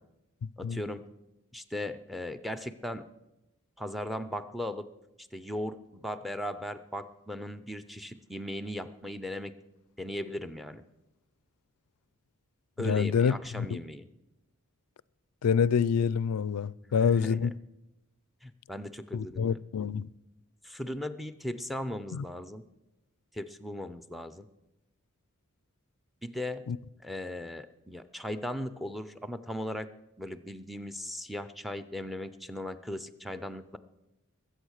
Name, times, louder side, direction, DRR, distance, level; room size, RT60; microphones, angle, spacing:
voice 1, 0.6-1.1 1.5-3.1 3.8-4.9 5.2-9.5 10.0-10.8 12.8-14.1 16.8-17.5 18.4-19.6 20.6-22.6 23.3-24.5 26.2-26.7 27.0-29.9 30.2-33.8, left 1 dB, ahead, 0.6 m, -38 dB
voice 2, 12.8-13.8 15.4-17.5 19.1-20.1 22.1-22.2 26.7-26.8, left 6 dB, 90° left, 0.4 m, -27 dB
21.5 x 8.1 x 6.5 m
head